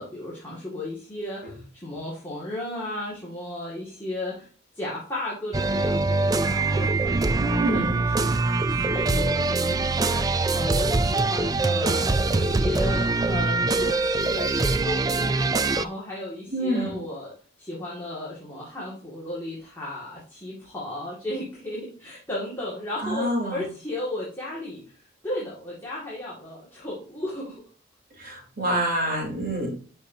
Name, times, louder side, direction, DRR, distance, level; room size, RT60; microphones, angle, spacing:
voice 1, 0.0-4.5 4.7-7.3 7.7-8.2 8.7-27.6, left 1 dB, 10° left, -7 dB, 2.1 m, -34 dB
sound 1, 5.5-15.8, right 3 dB, 15° right, 0.3 m, -23 dB
voice 2, 7.4-8.0 16.5-17.0 23.0-23.6 28.2-29.7, right 1 dB, 45° right, -2 dB, 3.5 m, -27 dB
11.5 x 5.5 x 2.8 m, 0.42 s
head